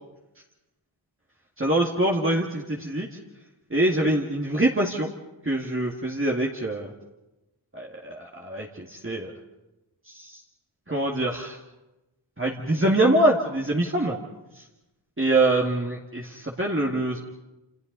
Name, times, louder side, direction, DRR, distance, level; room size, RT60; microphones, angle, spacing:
voice 1, 1.6-3.1 3.7-5.1 5.4-6.9 7.7-8.7 8.9-9.3 10.1-10.4 10.9-11.6 12.4-14.2 14.6-14.7 15.2-17.2, right 1 dB, 25° right, -2 dB, 2.2 m, -24 dB
29.0 x 27.0 x 4.1 m, 1.0 s
cardioid pair, 45°, 49 cm